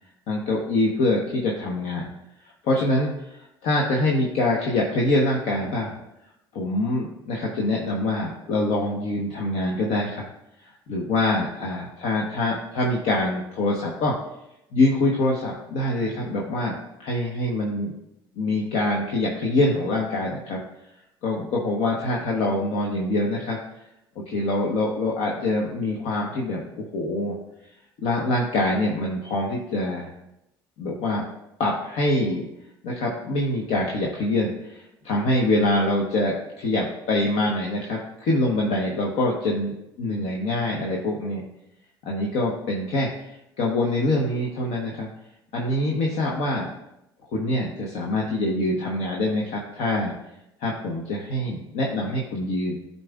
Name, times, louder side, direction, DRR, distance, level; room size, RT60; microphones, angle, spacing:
voice 1, 0.3-2.1 2.6-6.0 6.5-10.3 10.9-14.1 14.7-17.9 18.4-20.6 21.2-23.6 24.3-27.4 28.0-30.1 30.8-31.2 31.6-32.5 32.8-41.4 42.0-43.1 43.6-45.1 45.5-46.7 47.3-50.1 50.6-52.7, left 2 dB, 55° left, -2 dB, 1.1 m, -25 dB
12.0 x 4.1 x 2.4 m, 0.86 s
figure-of-eight pair, 60°, 12 cm